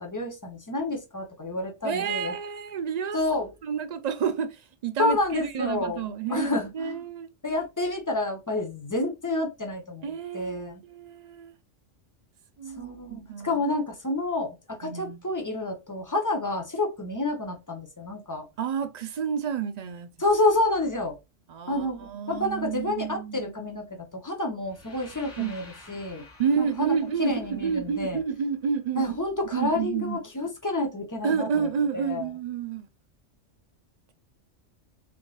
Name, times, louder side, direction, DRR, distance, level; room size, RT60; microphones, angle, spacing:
voice 1, 0.0-2.3 3.1-3.5 5.0-7.0 7.4-10.1 10.3-10.8 12.8-18.5 20.2-21.2 21.7-26.2 26.6-26.9 27.2-28.2 29.0-32.3, left 2 dB, 20° left, 0.7 m, -29 dB
voice 2, 1.8-3.2 3.6-7.3 10.0-11.5 12.6-13.6 14.8-15.2 18.6-20.1 21.5-23.5 25.4-25.5 26.4-29.1 29.5-30.2 31.2-32.9, right 6 dB, 70° right, 0.4 m, -30 dB
sound 1, 24.6-28.7, left 2 dB, 35° left, 1.5 m, -51 dB
3.8 x 3.7 x 2.3 m
omnidirectional pair, 1.2 m